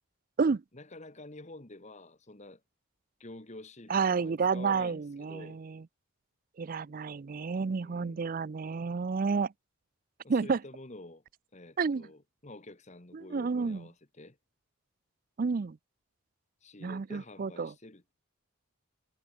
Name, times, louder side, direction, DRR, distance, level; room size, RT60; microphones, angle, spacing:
voice 1, 0.7-2.6 3.2-5.6 7.8-8.3 10.2-11.2 11.5-14.4 16.6-18.1, left 2 dB, 30° left, 1.5 m, -49 dB
voice 2, 3.9-5.8 6.6-9.5 10.3-10.6 11.8-12.0 13.1-13.8 15.4-15.8 16.8-17.7, right 5 dB, 40° right, 0.4 m, -30 dB
head